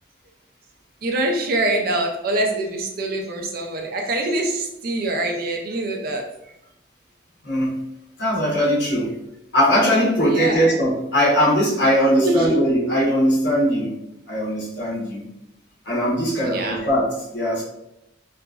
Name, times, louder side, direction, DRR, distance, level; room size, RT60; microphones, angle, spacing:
voice 1, 1.0-6.3 10.2-10.7 12.2-12.9 16.4-16.8, right 1 dB, 45° right, 2 dB, 0.4 m, -24 dB
voice 2, 7.4-7.8 8.2-9.2 9.5-13.9 14.3-15.3 15.8-17.6, equal, 60° left, -6 dB, 1.0 m, -20 dB
2.9 x 2.4 x 2.3 m, 0.86 s
head